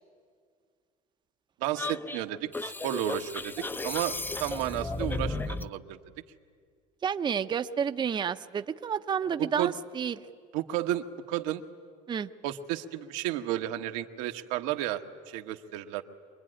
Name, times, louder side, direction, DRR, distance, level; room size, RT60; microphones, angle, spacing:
voice 1, 1.6-4.1 4.4-6.0 9.4-9.7 10.5-11.6 12.4-16.0, right 13 dB, 90° right, 5 dB, 1.4 m, -32 dB
sound 1, 1.8-5.7, left 2 dB, 10° left, 0.6 m, -34 dB
voice 2, 7.0-10.2 12.1-12.3, right 7 dB, 30° right, 9 dB, 0.7 m, -30 dB
25.0 x 21.0 x 9.9 m, 2.1 s
supercardioid pair, 105°, 16 cm